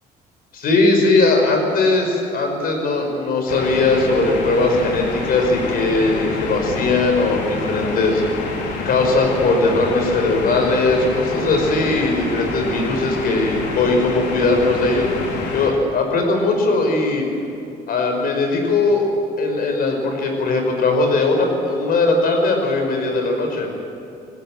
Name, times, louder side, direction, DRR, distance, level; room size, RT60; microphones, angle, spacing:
voice 1, 0.5-8.2 8.9-17.2 17.9-19.1 19.4-23.7, left 3 dB, 60° left, 3 dB, 5.5 m, -19 dB
sound 1, 3.5-15.7, left 3 dB, 85° left, 3.9 m, -28 dB
21.0 x 17.0 x 9.1 m, 2.5 s
cardioid pair, 110°, 17 cm